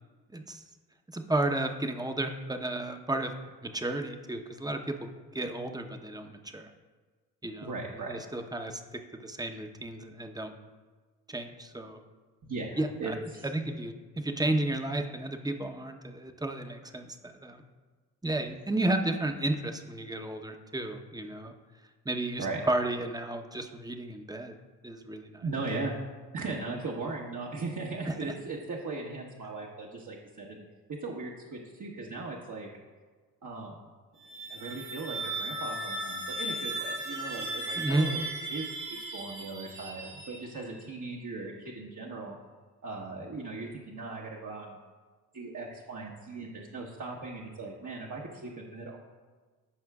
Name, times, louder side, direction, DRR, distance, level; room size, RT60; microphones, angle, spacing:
voice 1, 0.3-0.6 1.1-3.3 3.6-6.7 7.4-7.7 8.1-10.5 11.3-12.0 12.8-13.1 13.4-17.6 18.2-21.5 22.0-24.6 24.8-25.4 28.0-28.3 37.8-38.1, right 2 dB, 10° right, 6 dB, 0.9 m, -33 dB
voice 2, 7.6-8.2 12.4-13.5 22.4-22.6 25.4-26.0 26.3-30.6 31.0-32.7 33.4-33.8 34.5-38.2 38.5-42.4 42.8-44.8 45.3-49.0, right 3 dB, 50° right, -3 dB, 1.3 m, -38 dB
sound 1, 34.1-40.8, right 2 dB, 80° right, 2.3 m, -37 dB
14.5 x 5.5 x 2.4 m, 1.4 s
hypercardioid pair, 45°, 41 cm